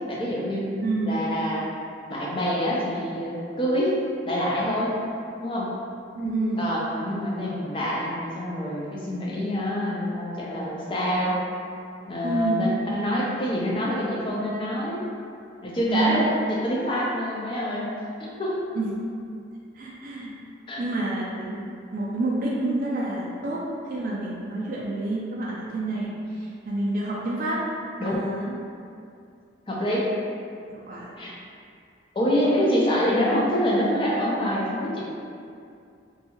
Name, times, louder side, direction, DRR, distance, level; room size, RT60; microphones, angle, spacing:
voice 1, 0.1-0.7 1.0-1.6 2.1-3.9 4.2-4.9 5.4-5.7 6.6-11.4 12.1-15.0 15.6-16.2 16.5-17.9 18.2-18.5 20.7-20.8 28.0-28.2 29.7-30.1 31.2-31.3 32.1-35.0, equal, 25° left, -5 dB, 0.4 m, -26 dB
voice 2, 0.8-1.1 6.1-6.6 12.2-12.7 15.9-16.2 18.7-19.0 19.7-20.3 20.8-21.7 21.9-27.6 28.0-28.5 30.7-31.1, right 2 dB, 45° right, -5 dB, 0.3 m, -28 dB
2.6 x 2.3 x 2.8 m, 2.4 s
head